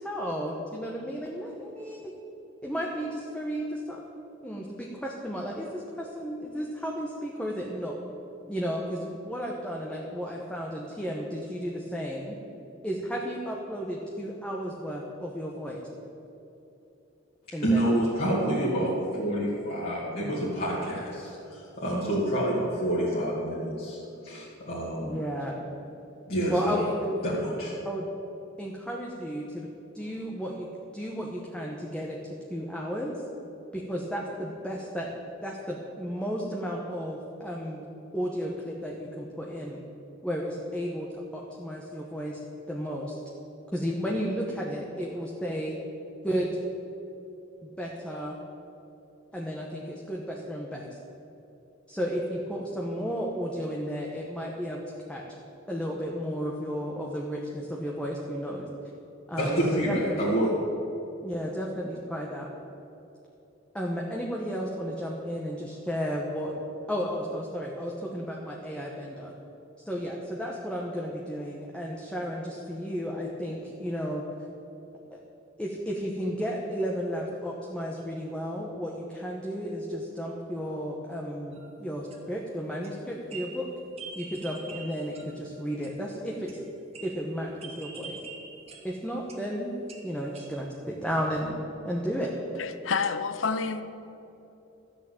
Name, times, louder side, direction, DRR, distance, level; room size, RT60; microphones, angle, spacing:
voice 1, 0.0-2.1 2.6-4.0 4.4-8.0 8.5-12.4 12.8-15.8 17.5-17.9 25.0-25.5 26.5-27.2 27.8-28.1 28.6-29.7 29.9-30.7 30.9-32.2 32.5-33.2 33.7-35.1 35.4-37.9 38.1-39.8 40.2-42.4 42.7-43.1 43.7-45.8 46.2-46.6 47.6-48.4 49.3-50.9 51.9-54.8 55.1-55.2 55.7-58.7 59.3-60.2 61.2-62.5 63.7-66.5 66.9-69.3 69.8-74.2 75.1-75.2 75.6-83.7 84.1-86.6 87.0-88.2 88.8-89.7 90.0-91.6 91.8-92.3, equal, 5° left, -2 dB, 1.0 m, -33 dB
voice 2, 17.6-25.2 26.3-26.7 27.2-27.7 59.4-60.5, right 1 dB, 50° left, -8 dB, 2.3 m, -28 dB
sound 1, 81.5-81.8 82.1-82.4 82.8-86.0 86.5-89.5 89.9-90.8, right 4 dB, 30° right, 1.5 m, -45 dB
voice 3, 92.6-93.8, left 5 dB, 80° left, 11 dB, 0.7 m, -28 dB
13.5 x 6.2 x 8.7 m, 2.9 s
head